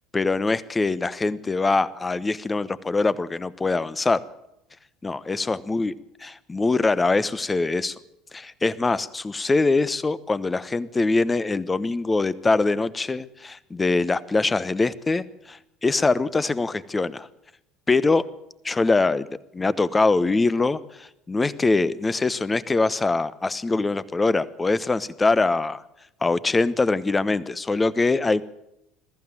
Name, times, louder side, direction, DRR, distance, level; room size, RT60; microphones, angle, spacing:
voice 1, 0.1-4.2 5.0-5.9 6.2-7.9 8.3-17.3 17.9-18.3 18.6-19.3 19.5-25.8 26.2-28.4, left 3 dB, 15° left, 17 dB, 1.0 m, -23 dB
21.5 x 14.5 x 9.1 m, 0.85 s
figure-of-eight pair, 65°, 0 cm